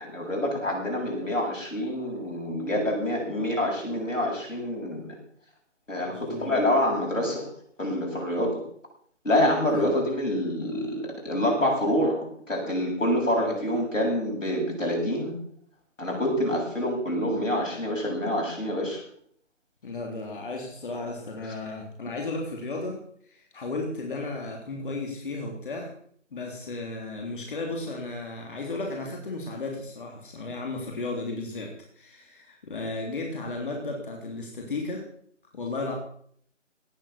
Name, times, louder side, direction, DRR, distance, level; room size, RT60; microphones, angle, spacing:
voice 1, 0.0-5.1 5.9-7.5 7.8-8.6 9.2-15.4 16.0-19.0, left 1 dB, 85° left, 0 dB, 7.9 m, -27 dB
voice 2, 6.0-6.6 9.7-10.0 13.3-13.5 19.8-25.9 26.3-35.1 35.5-35.9, left 3 dB, 40° left, 1 dB, 3.4 m, -34 dB
17.5 x 8.4 x 7.3 m, 0.63 s
figure-of-eight pair, 160°, 38 cm